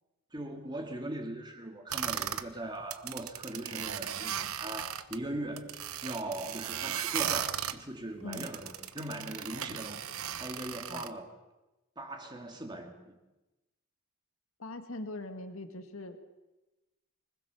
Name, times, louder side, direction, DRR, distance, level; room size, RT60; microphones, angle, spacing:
voice 1, 0.3-10.1 10.4-11.3 12.0-13.2, right 1 dB, 20° right, 4 dB, 2.5 m, -40 dB
sound 1, 1.9-2.5 2.8-5.2 5.6-7.8 8.3-11.1, right 9 dB, 75° right, 1.1 m, -36 dB
voice 2, 14.6-16.2, left 2 dB, 70° left, 7 dB, 2.0 m, -41 dB
25.0 x 20.5 x 7.2 m, 1.1 s
head